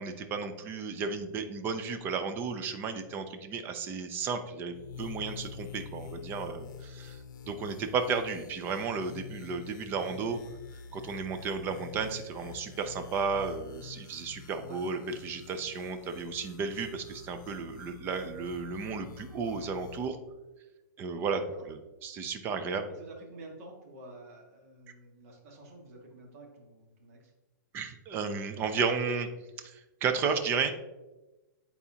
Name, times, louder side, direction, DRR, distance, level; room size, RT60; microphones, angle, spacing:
voice 1, 0.0-7.2 7.5-10.4 10.9-20.2 21.0-21.4 21.7-22.9 27.7-29.3 29.6-30.7, right 5 dB, 20° right, 8 dB, 0.5 m, -33 dB
sound 1, 4.7-20.1, left 6 dB, 65° left, 0.8 m, -47 dB
voice 2, 21.3-21.6 22.9-27.3, right 2 dB, 45° right, 0 dB, 1.7 m, -50 dB
9.5 x 4.1 x 2.8 m, 1.1 s
hypercardioid pair, 160°, 11 cm